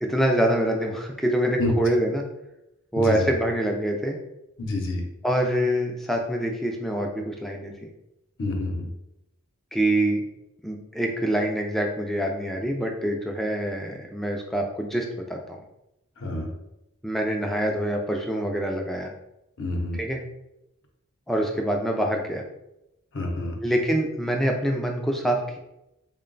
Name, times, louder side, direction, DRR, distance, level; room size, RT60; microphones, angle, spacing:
voice 1, 0.0-2.3 2.9-4.2 5.2-7.9 9.7-10.2 10.6-15.6 17.0-19.1 20.0-20.2 21.3-22.4 23.6-25.6, right 1 dB, ahead, 1 dB, 0.4 m, -25 dB
voice 2, 3.0-3.3 4.6-5.0 8.4-8.9 16.2-16.5 19.6-20.0 23.1-23.6, left 2 dB, 60° left, 2 dB, 0.7 m, -28 dB
3.7 x 2.2 x 3.8 m, 0.90 s
head